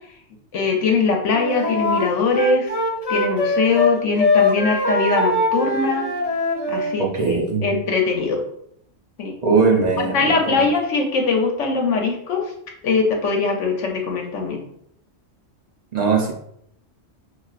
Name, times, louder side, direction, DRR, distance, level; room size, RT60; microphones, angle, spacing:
voice 1, 0.5-2.7 3.1-6.1 6.7-8.4 9.2-9.3 10.1-12.5 12.8-14.6, left 4 dB, 70° left, 2 dB, 1.1 m, -21 dB
Wind instrument woodwind instrument, 1.3-6.9, left 3 dB, 35° left, 0.7 m, -21 dB
voice 2, 7.0-7.7 9.4-10.7 15.9-16.3, right 4 dB, 45° right, 0 dB, 0.6 m, -20 dB
5.8 x 2.4 x 2.4 m, 0.71 s
omnidirectional pair, 1.3 m